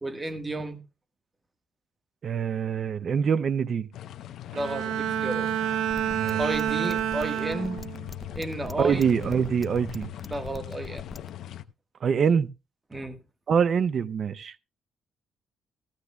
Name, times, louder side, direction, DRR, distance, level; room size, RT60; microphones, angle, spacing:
voice 1, 0.0-0.8 4.5-5.5 6.4-7.8 8.4-9.0 10.3-11.0 12.9-13.2, right 2 dB, 15° right, 1.4 m, -32 dB
voice 2, 2.2-3.9 6.1-6.4 8.8-10.1 12.0-12.5 13.5-14.5, right 7 dB, 45° right, 0.5 m, -24 dB
sound 1, 3.9-11.6, left 12 dB, 70° left, 0.7 m, -41 dB
Bowed string instrument, 4.5-8.1 8.6-9.0, right 10 dB, 85° right, 0.6 m, -29 dB
sound 2, 5.9-11.3, left 2 dB, 20° left, 0.5 m, -42 dB
16.0 x 14.5 x 2.3 m
cardioid pair, 140°, 0 cm